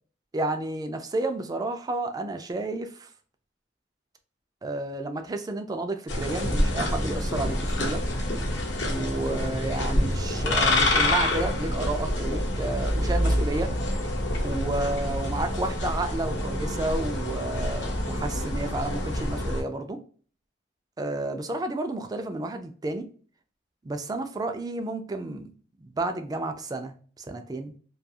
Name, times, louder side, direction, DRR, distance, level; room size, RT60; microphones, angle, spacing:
voice 1, 0.3-3.1 4.6-8.0 8.9-13.7 14.4-20.0 21.0-23.0 23.8-25.5 25.8-27.7, right 2 dB, 20° right, 7 dB, 0.3 m, -31 dB
sound 1, 6.1-19.6, left 1 dB, 70° left, 0.8 m, -27 dB
sound 2, 9.9-15.0, equal, 40° left, 0.6 m, -36 dB
2.3 x 2.3 x 2.7 m, 0.43 s
head